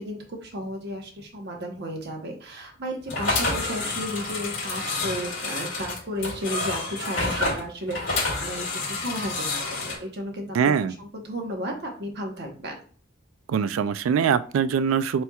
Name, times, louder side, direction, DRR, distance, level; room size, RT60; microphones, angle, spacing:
voice 1, 0.0-12.8, equal, 55° right, 2 dB, 1.0 m, -34 dB
sound 1, 3.1-10.0, left 2 dB, 65° left, 2.1 m, -29 dB
voice 2, 10.5-10.9 13.5-15.2, right 7 dB, 85° right, 14 dB, 0.3 m, -23 dB
4.4 x 4.2 x 2.3 m, 0.41 s
head